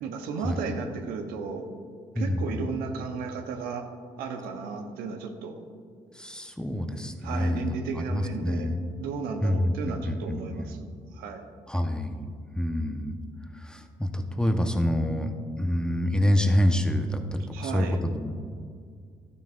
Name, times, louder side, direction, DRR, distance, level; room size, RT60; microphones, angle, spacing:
voice 1, 0.0-1.7 2.1-3.9 4.2-5.6 7.2-8.7 9.0-10.9 11.1-11.4 17.5-18.0, right 5 dB, 85° right, 5 dB, 0.9 m, -34 dB
voice 2, 2.1-2.7 6.1-8.8 9.4-10.7 11.7-13.2 13.5-18.3, left 1 dB, 5° left, 5 dB, 1.0 m, -27 dB
12.0 x 9.6 x 2.5 m, 2.1 s
supercardioid pair, 60°, 15 cm